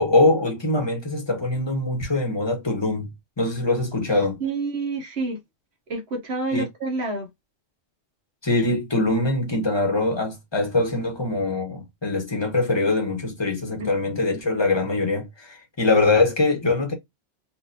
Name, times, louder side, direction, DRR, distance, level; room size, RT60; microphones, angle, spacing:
voice 1, 0.0-3.1 3.4-4.4 6.5-6.6 8.4-16.9, left 2 dB, 25° left, 1.1 m, -23 dB
voice 2, 4.4-5.4 5.9-7.3 13.8-13.9, right 3 dB, 65° right, 1.3 m, -28 dB
4.5 x 2.5 x 2.6 m
omnidirectional pair, 1.2 m